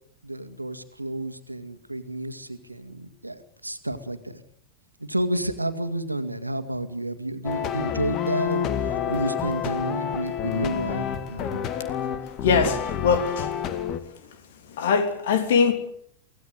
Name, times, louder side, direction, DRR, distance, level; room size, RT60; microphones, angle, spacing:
voice 1, 0.2-4.4 5.0-11.7, right 1 dB, 85° right, 9 dB, 2.0 m, -31 dB
sound 1, 7.4-14.0, left 9 dB, 35° left, 1.9 m, -29 dB
voice 2, 12.4-13.5 14.8-15.7, left 5 dB, 55° left, 9 dB, 3.2 m, -21 dB
24.0 x 18.0 x 8.0 m, 0.68 s
figure-of-eight pair, 90°, 0 cm